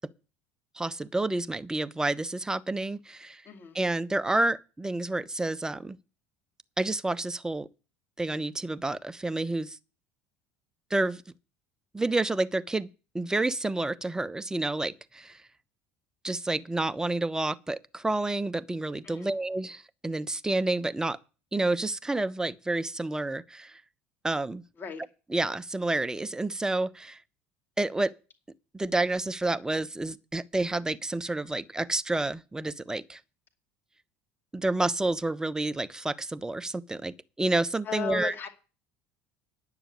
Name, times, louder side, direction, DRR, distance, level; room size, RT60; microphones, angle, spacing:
voice 1, 0.7-3.4 3.7-6.0 6.8-7.7 8.2-9.8 10.9-11.2 11.9-12.9 13.1-15.4 16.2-21.2 21.5-23.8 24.2-24.6 25.3-27.2 27.8-28.1 28.7-33.2 34.5-38.3, right 2 dB, 10° right, 0.9 m, -29 dB
voice 2, 3.4-3.8 19.0-19.3 24.8-25.0 37.8-38.5, left 9 dB, 35° left, 2.5 m, -36 dB
10.5 x 7.0 x 8.1 m
hypercardioid pair, 70°, 6 cm